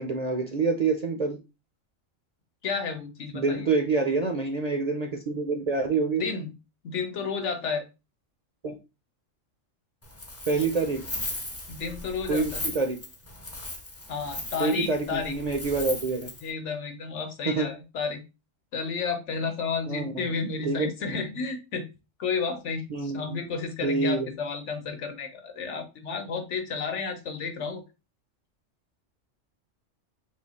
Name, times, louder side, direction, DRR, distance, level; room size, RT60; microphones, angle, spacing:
voice 1, 0.0-1.4 3.3-6.2 8.6-8.8 10.5-11.1 12.3-13.0 14.6-16.3 17.5-17.7 19.9-20.3 20.6-20.9 22.9-23.4 23.8-24.3, right 4 dB, 45° right, 3 dB, 0.5 m, -27 dB
voice 2, 2.6-3.6 6.2-6.5 6.8-7.8 11.7-12.6 14.1-15.4 16.4-18.2 18.7-21.9 22.2-27.8, left 5 dB, 70° left, 5 dB, 1.1 m, -32 dB
Wind, 10.0-16.5, left 2 dB, 20° left, 0.5 m, -37 dB
3.7 x 2.8 x 4.0 m, 0.27 s
omnidirectional pair, 1.3 m